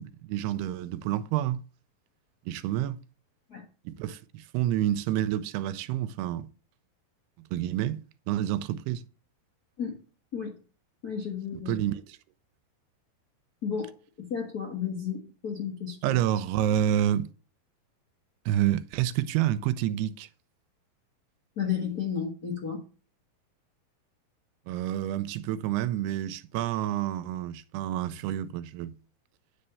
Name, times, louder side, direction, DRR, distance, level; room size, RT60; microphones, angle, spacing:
voice 1, 0.0-1.6 2.5-3.0 3.9-6.5 7.5-8.0 8.3-9.0 11.7-12.2 16.0-17.3 18.5-20.3 24.7-28.9, right 12 dB, 85° right, 2.6 m, -28 dB
voice 2, 11.0-11.7 13.6-13.9 14.2-16.2 21.6-22.8, left 7 dB, 65° left, 0.9 m, -32 dB
9.9 x 4.4 x 6.8 m
omnidirectional pair, 4.7 m